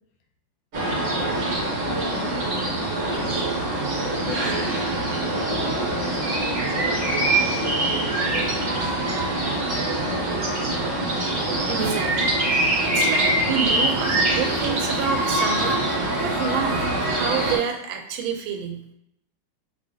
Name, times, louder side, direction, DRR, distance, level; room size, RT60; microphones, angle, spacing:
sound 1, 0.7-17.6, right 1 dB, 50° right, 1.0 m, -24 dB
voice 1, 1.8-2.4 3.0-9.0, left 4 dB, 80° left, 2 dB, 1.4 m, -39 dB
voice 2, 11.7-12.4 12.8-15.8 16.2-18.8, right 7 dB, 85° right, 5 dB, 1.4 m, -28 dB
sound 2, 11.8-12.0 13.4-17.7, right 4 dB, 70° right, 1.3 m, -39 dB
5.0 x 3.1 x 2.6 m, 0.76 s
omnidirectional pair, 2.2 m